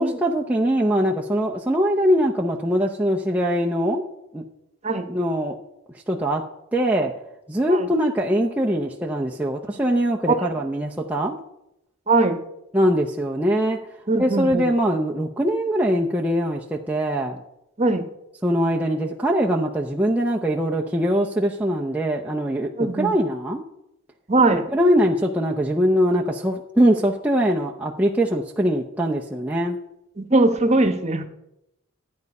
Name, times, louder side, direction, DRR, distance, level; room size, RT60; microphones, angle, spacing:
voice 1, 0.0-4.0 4.3-4.4 5.1-5.6 6.1-6.4 6.7-7.1 7.5-11.3 12.7-13.8 14.1-17.4 18.4-23.6 24.7-29.8, equal, 5° right, -2 dB, 0.6 m, -22 dB
voice 2, 12.1-12.4 14.1-14.7 17.8-18.0 22.7-23.1 24.3-24.6 30.2-31.2, right 2 dB, 30° right, 7 dB, 1.1 m, -20 dB
13.5 x 9.4 x 5.4 m, 0.87 s
head